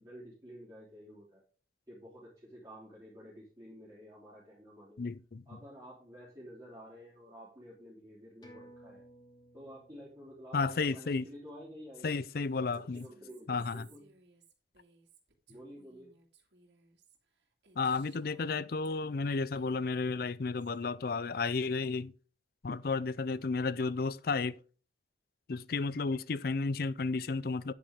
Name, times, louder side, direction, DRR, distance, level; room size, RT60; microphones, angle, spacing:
voice 1, 0.0-1.4 1.9-5.0 5.5-9.0 9.5-12.1 12.5-14.0 15.5-16.1, equal, 20° right, 3.2 m, -51 dB
voice 2, 5.0-5.4 10.5-11.3 12.0-13.1 13.5-13.9 17.8-22.1 22.6-24.6 25.5-27.7, left 4 dB, 55° left, 0.5 m, -32 dB
sound 1, 8.4-13.4 13.7-13.8, right 1 dB, 25° left, 2.6 m, -60 dB
Female speech woman speaking, 12.5-19.3 19.6-20.8, right 4 dB, 70° right, 2.4 m, -63 dB
9.3 x 8.6 x 3.6 m
head